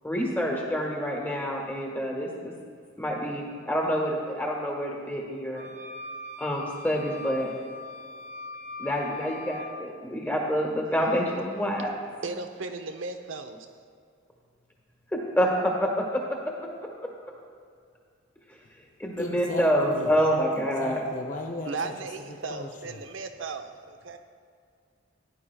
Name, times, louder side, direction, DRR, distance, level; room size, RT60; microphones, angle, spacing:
voice 1, 0.0-2.5 3.0-5.7 6.4-7.5 8.8-11.9 15.1-16.2 19.0-21.0, equal, 10° left, -1 dB, 1.4 m, -27 dB
sound 1, 5.5-9.7, left 2 dB, 40° right, 0.8 m, -41 dB
voice 2, 12.2-13.7 21.6-24.2, right 3 dB, 85° right, 6 dB, 0.8 m, -36 dB
voice 3, 19.2-20.1 20.6-21.9 22.3-23.0, left 2 dB, 40° left, 1 dB, 0.6 m, -37 dB
16.0 x 10.0 x 2.3 m, 2.2 s
head